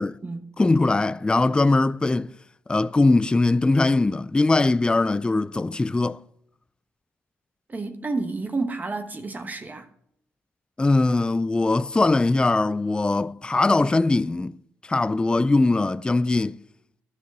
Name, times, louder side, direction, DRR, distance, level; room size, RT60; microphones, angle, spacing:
voice 1, 0.6-2.3 2.7-6.2 10.8-14.5 14.9-16.6, left 2 dB, 15° left, 0.4 m, -21 dB
voice 2, 7.7-9.8, right 3 dB, 30° right, 1.2 m, -30 dB
11.0 x 6.5 x 6.0 m
supercardioid pair, 60°, 5 cm